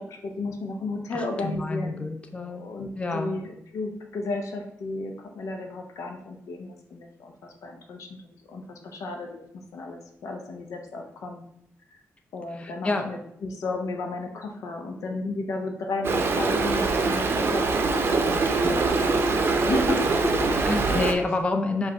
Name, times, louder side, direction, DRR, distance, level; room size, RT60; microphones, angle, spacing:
voice 1, 0.0-2.0 2.3-7.3 7.6-8.1 8.5-9.4 9.7-11.4 12.3-20.5 20.8-21.0, left 3 dB, 80° left, 3 dB, 0.7 m, -34 dB
voice 2, 1.1-2.6 3.0-3.3 12.5-13.1 20.5-21.9, left 2 dB, 20° left, 4 dB, 0.5 m, -28 dB
Stream, 16.0-21.1, right 3 dB, 45° right, 0.6 m, -23 dB
4.8 x 2.5 x 4.3 m, 0.73 s
cardioid pair, 90°, 5 cm